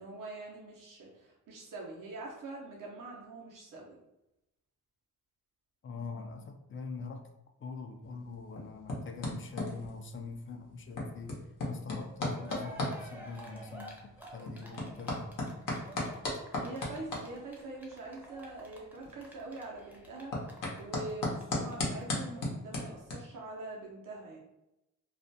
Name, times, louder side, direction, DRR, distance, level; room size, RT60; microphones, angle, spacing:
voice 1, 0.0-4.0 16.6-24.4, right 2 dB, 85° right, -2 dB, 0.7 m, -44 dB
voice 2, 5.8-7.3 7.6-11.4 11.7-15.3, left 4 dB, 40° left, 5 dB, 0.4 m, -43 dB
sound 1, 8.0-23.1, left 1 dB, 80° left, 0.8 m, -38 dB
Cheering, 12.0-12.1 12.3-21.4 21.7-21.8 22.0-22.1, right 1 dB, 5° right, 0.6 m, -50 dB
2.4 x 2.1 x 2.6 m, 0.88 s
cardioid pair, 85°, 32 cm